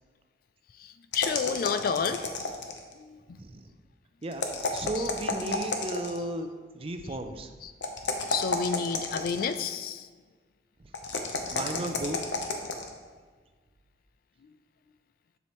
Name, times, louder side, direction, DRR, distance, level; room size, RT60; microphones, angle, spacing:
voice 1, 0.8-2.2 3.0-3.2 4.9-5.1 7.6-7.7 8.3-10.1, left 6 dB, 55° left, 11 dB, 0.3 m, -30 dB
sound 1, 1.1-2.9 4.3-6.2 7.8-9.6 10.9-12.9, left 3 dB, 90° left, 0.8 m, -31 dB
voice 2, 3.4-3.7 4.2-4.5 4.7-7.5 11.5-12.3, right 1 dB, 35° right, 7 dB, 0.5 m, -34 dB
7.4 x 7.0 x 3.0 m, 1.5 s
head